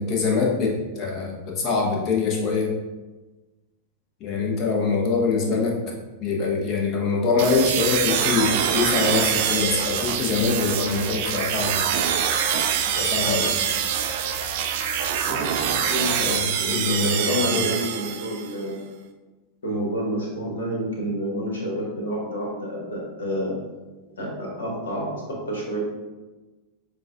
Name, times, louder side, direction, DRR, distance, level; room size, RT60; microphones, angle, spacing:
voice 1, 0.0-2.7 4.2-5.8 6.2-11.8 12.9-13.5 16.1-17.7, left 4 dB, 35° left, -1 dB, 0.9 m, -24 dB
sound 1, 7.4-18.6, right 8 dB, 50° right, 0.3 m, -25 dB
voice 2, 15.2-18.9 19.6-23.6 24.2-25.8, equal, 65° left, -3 dB, 1.4 m, -29 dB
7.2 x 2.4 x 2.4 m, 1.2 s
figure-of-eight pair, 90°, 0 cm